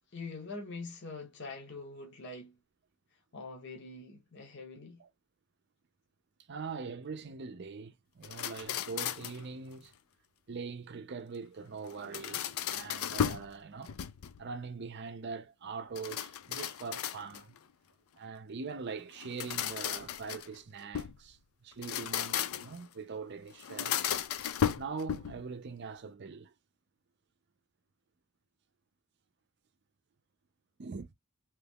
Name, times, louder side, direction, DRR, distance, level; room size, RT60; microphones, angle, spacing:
voice 1, 0.1-2.5 3.3-5.0, left 3 dB, 50° left, 0.8 m, -44 dB
voice 2, 6.5-9.9 10.5-13.9 14.4-17.5 18.2-24.0 24.8-26.5 30.8-31.1, right 5 dB, 50° right, 0.5 m, -42 dB
sound 1, 8.2-9.5 11.9-13.5 13.9-14.5 15.9-17.6 19.2-21.2 21.7-22.8 23.6-25.5, left 9 dB, 70° left, 0.4 m, -35 dB
3.0 x 2.3 x 3.4 m
head